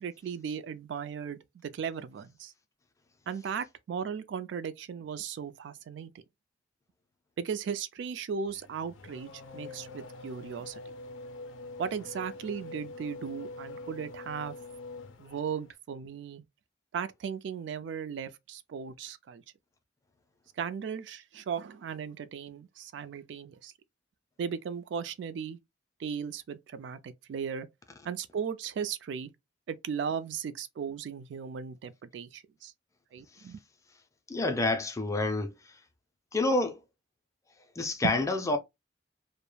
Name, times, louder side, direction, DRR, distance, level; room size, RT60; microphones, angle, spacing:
voice 1, 0.0-2.5 3.3-6.2 7.4-10.8 11.8-14.5 15.2-16.4 16.9-19.4 20.6-23.7 24.4-25.6 26.0-27.7 28.0-29.3 29.7-32.7 33.1-33.6 38.0-38.2, right 7 dB, 65° right, 0.3 m, -36 dB
Race car auto racing / Accelerating revving vroom, 8.5-15.7, left 3 dB, 90° left, 0.4 m, -45 dB
voice 2, 34.3-35.5 36.3-36.8 37.8-38.6, left 2 dB, 15° left, 0.3 m, -28 dB
2.2 x 2.0 x 3.0 m
head